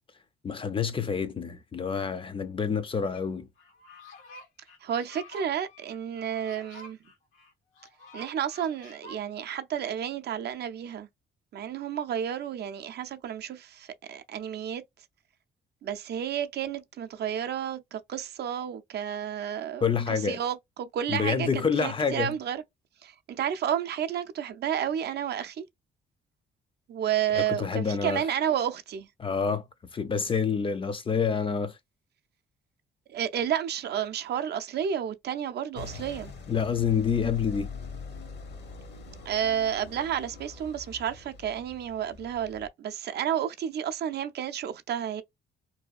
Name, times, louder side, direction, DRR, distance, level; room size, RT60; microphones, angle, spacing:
voice 1, 0.4-3.5 19.8-20.4 21.1-22.3 27.4-28.2 29.2-29.6 29.9-31.8 36.5-37.7, left 6 dB, 25° left, 0.4 m, -27 dB
sound 1, 3.1-3.2 3.6-9.2, left 1 dB, 90° left, 0.9 m, -49 dB
voice 2, 4.8-7.0 8.1-11.1 11.5-14.8 15.8-22.6 23.0-25.6 26.9-29.1 33.1-36.3 39.3-45.2, right 9 dB, 55° right, 0.4 m, -31 dB
sound 2, 35.8-42.7, left 4 dB, 60° left, 0.8 m, -43 dB
2.7 x 2.2 x 2.3 m
cardioid pair, 90°, 20 cm